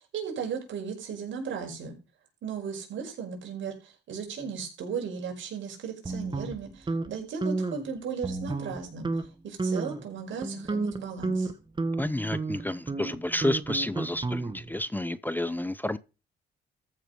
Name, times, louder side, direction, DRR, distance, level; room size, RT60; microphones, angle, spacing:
voice 1, 0.1-2.0 2.4-9.1 9.4-11.5, right 6 dB, 70° right, 5.4 m, -36 dB
sound 1, 6.0-7.1 7.4-7.8 8.2-8.8 9.0-9.3 9.6-10.0 10.4-14.8, right 3 dB, 25° right, 1.7 m, -31 dB
voice 2, 12.0-16.0, left 1 dB, 10° left, 0.7 m, -30 dB
14.0 x 6.6 x 5.3 m
cardioid pair, 90°, 20 cm